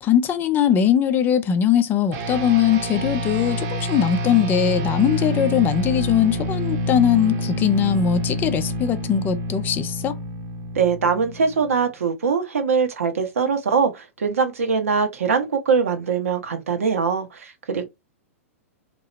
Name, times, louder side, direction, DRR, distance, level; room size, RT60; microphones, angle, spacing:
voice 1, 0.0-10.2, left 9 dB, 25° left, 0.5 m, -20 dB
sound 1, 2.1-11.8, equal, 40° right, 1.0 m, -27 dB
voice 2, 10.7-17.9, right 5 dB, 70° right, 1.0 m, -22 dB
3.0 x 2.8 x 4.1 m
figure-of-eight pair, 105°, 8 cm